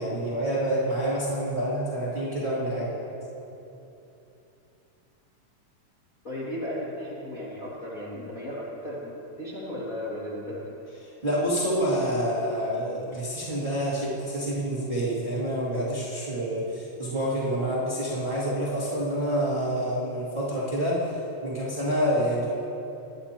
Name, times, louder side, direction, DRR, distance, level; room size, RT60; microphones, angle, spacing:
voice 1, 0.0-2.9 11.0-22.5, equal, 15° right, -9 dB, 2.1 m, -27 dB
voice 2, 6.2-8.6 8.8-9.1 9.4-10.7, left 1 dB, 30° left, -8 dB, 2.2 m, -35 dB
22.0 x 11.0 x 2.9 m, 2.9 s
omnidirectional pair, 3.8 m